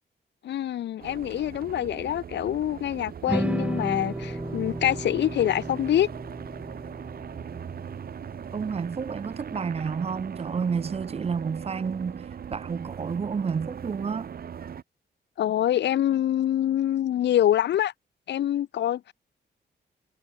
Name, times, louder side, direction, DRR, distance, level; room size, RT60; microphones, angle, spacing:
voice 1, 0.4-6.1 15.4-17.9 18.3-19.1, left 11 dB, 85° left, 0.8 m, -25 dB
sound 1, 1.0-14.8, right 8 dB, 60° right, 4.1 m, -40 dB
sound 2, 3.3-9.5, right 1 dB, 5° right, 3.8 m, -34 dB
voice 2, 8.5-14.3, right 6 dB, 35° right, 1.1 m, -30 dB
wide cardioid pair, 150°, 18 cm